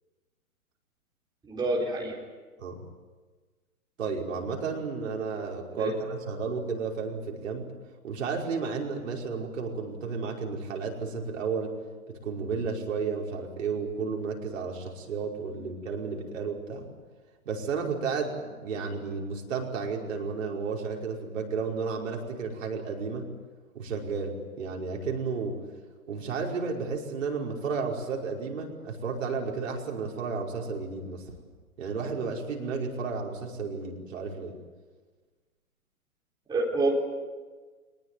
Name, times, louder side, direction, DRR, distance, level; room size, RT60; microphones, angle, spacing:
voice 1, 1.4-2.2 5.7-5.9 36.5-36.9, right 2 dB, 10° right, -2 dB, 4.3 m, -27 dB
voice 2, 4.0-7.7 8.0-11.7 12.1-16.9 17.5-23.3 23.7-25.6 26.1-31.3 31.8-34.5, right 5 dB, 60° right, 0 dB, 5.4 m, -32 dB
25.0 x 20.5 x 9.5 m, 1.4 s
figure-of-eight pair, 125°, 44 cm